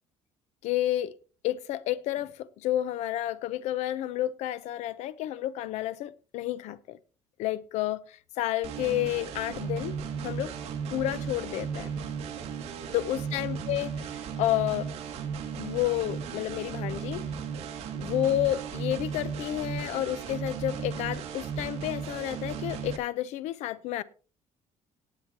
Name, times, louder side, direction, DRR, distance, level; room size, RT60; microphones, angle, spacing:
voice 1, 0.6-1.2 1.4-7.0 7.4-10.0 10.2-10.5 10.9-11.9 12.9-14.9 15.6-17.3 18.0-24.0, left 13 dB, 80° left, 0.7 m, -30 dB
sound 1, 8.6-23.0, right 6 dB, 65° right, 2.1 m, -35 dB
18.0 x 9.1 x 2.9 m
cardioid pair, 180°, 11 cm